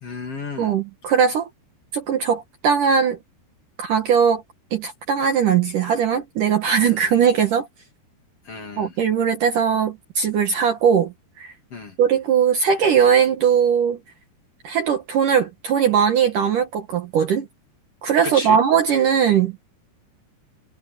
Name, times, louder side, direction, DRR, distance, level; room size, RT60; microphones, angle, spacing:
voice 1, 0.0-0.7 6.9-7.0 8.4-8.9 11.7-11.9 18.2-18.6, left 4 dB, 40° left, 3.2 m, -33 dB
voice 2, 0.6-1.5 1.9-3.2 3.8-4.4 4.7-7.7 8.8-11.5 12.0-14.0 14.6-17.5 18.0-19.6, right 7 dB, 60° right, 2.5 m, -19 dB
omnidirectional pair, 5.1 m